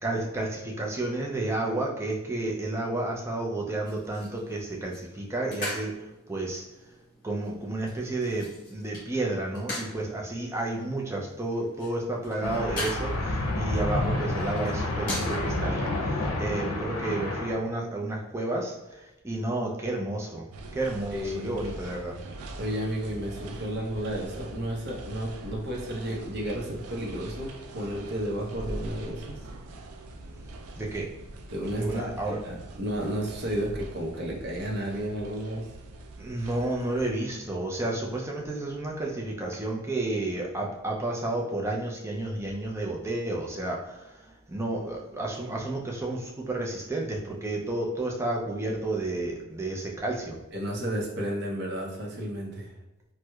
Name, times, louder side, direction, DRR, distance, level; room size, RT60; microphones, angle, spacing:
voice 1, 0.0-6.6 7.2-20.4 20.7-22.1 30.1-31.4 31.8-32.4 36.2-50.4, right 2 dB, 10° right, -2 dB, 0.4 m, -31 dB
sound 1, 3.8-15.3, left 1 dB, 40° left, 1.5 m, -41 dB
sound 2, 12.4-17.5, left 2 dB, 85° left, 0.6 m, -29 dB
sound 3, 20.5-37.1, right 2 dB, 90° right, 0.4 m, -43 dB
voice 2, 21.1-21.6 22.6-29.4 31.5-35.7 50.5-52.7, equal, 50° right, -2 dB, 0.7 m, -32 dB
4.4 x 2.1 x 2.3 m, 0.98 s
head